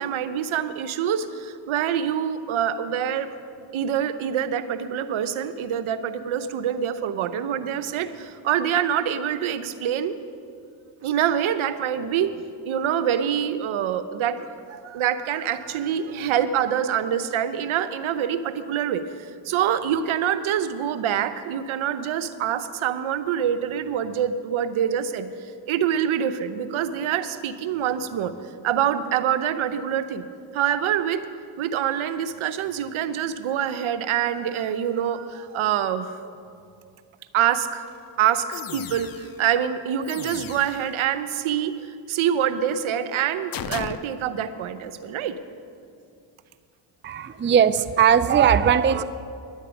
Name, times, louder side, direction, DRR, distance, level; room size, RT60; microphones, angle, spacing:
voice 1, 0.0-3.3 3.7-10.2 11.0-12.3 12.6-19.0 19.4-25.3 25.7-30.2 30.5-31.3 31.6-36.1 37.3-37.9 38.2-45.4, right 9 dB, 70° right, 11 dB, 0.9 m, -25 dB
sound 1, 37.9-38.0 38.5-39.5 40.0-41.0 43.5-44.0, left 9 dB, 45° left, 0.6 m, -35 dB
voice 2, 47.0-49.0, right 8 dB, 25° right, 14 dB, 0.5 m, -19 dB
11.0 x 8.2 x 9.0 m, 2.5 s
supercardioid pair, 55°, 50 cm